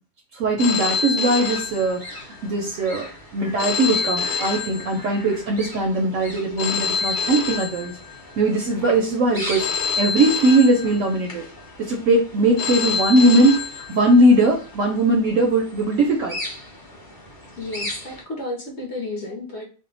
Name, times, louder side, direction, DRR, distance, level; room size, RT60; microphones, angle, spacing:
voice 1, 0.3-3.1 3.3-8.0 8.4-11.4 11.8-16.4, right 1 dB, 70° right, 1 dB, 0.8 m, -20 dB
Telephone, 0.6-2.5 3.6-5.5 6.6-8.5 9.6-11.4 12.6-14.4, left 6 dB, 80° left, 1.1 m, -27 dB
sound 1, 1.4-18.2, left 1 dB, 20° left, 0.6 m, -39 dB
voice 2, 17.6-19.6, left 2 dB, 55° left, 0 dB, 0.9 m, -32 dB
2.7 x 2.1 x 3.8 m, 0.37 s
omnidirectional pair, 1.7 m